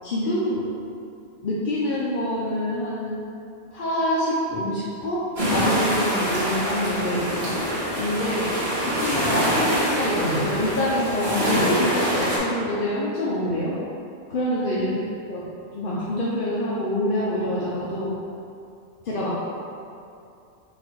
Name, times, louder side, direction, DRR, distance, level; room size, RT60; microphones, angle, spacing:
voice 1, 0.0-0.6 1.4-3.2 3.7-5.2 5.5-7.6 8.0-8.5 8.8-13.7 14.3-14.9 15.3-15.4 15.7-18.1 19.0-19.3, left 1 dB, 55° left, -8 dB, 0.6 m, -26 dB
sound 1, 5.4-12.4, equal, 40° right, 1.2 m, -25 dB
4.0 x 2.6 x 4.4 m, 2.6 s
omnidirectional pair, 1.3 m